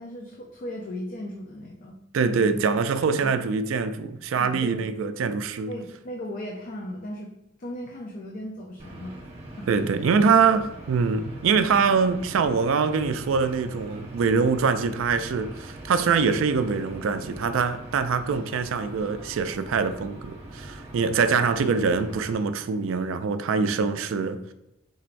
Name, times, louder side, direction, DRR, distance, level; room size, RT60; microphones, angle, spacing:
voice 1, 0.0-2.0 2.3-2.5 3.2-3.4 4.4-4.9 5.7-7.3 7.6-9.2 9.5-9.7 9.9-10.1, left 1 dB, 40° left, 0.5 m, -37 dB
voice 2, 2.1-5.7 9.7-24.5, right 5 dB, 75° right, 0.3 m, -24 dB
sound 1, 8.8-22.3, right 1 dB, 30° right, 1.0 m, -42 dB
4.4 x 4.0 x 2.5 m
head